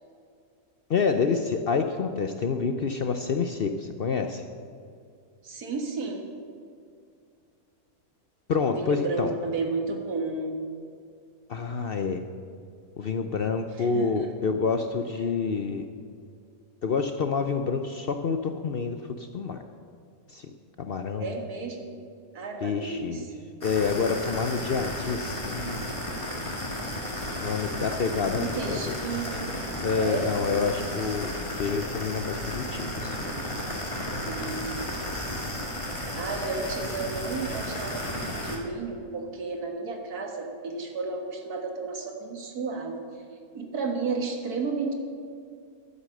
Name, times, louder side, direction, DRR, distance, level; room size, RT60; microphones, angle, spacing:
voice 1, 0.9-4.4 8.5-9.3 11.5-12.2 13.0-15.8 16.8-19.6 20.3-20.5 20.8-21.4 22.6-23.2 23.6-25.9 27.4-28.9 29.8-31.3 31.6-33.3, left 5 dB, 60° left, 6 dB, 0.6 m, -28 dB
voice 2, 5.4-6.3 8.7-10.6 13.8-14.3 21.2-21.9 22.3-23.4 28.4-29.5 29.9-30.3 34.2-34.9 36.1-43.0 43.5-44.9, right 4 dB, 90° right, 3 dB, 2.0 m, -32 dB
sound 1, 23.6-38.6, left 1 dB, 20° left, 1.7 m, -33 dB
11.0 x 9.6 x 6.5 m, 2.3 s
omnidirectional pair, 1.6 m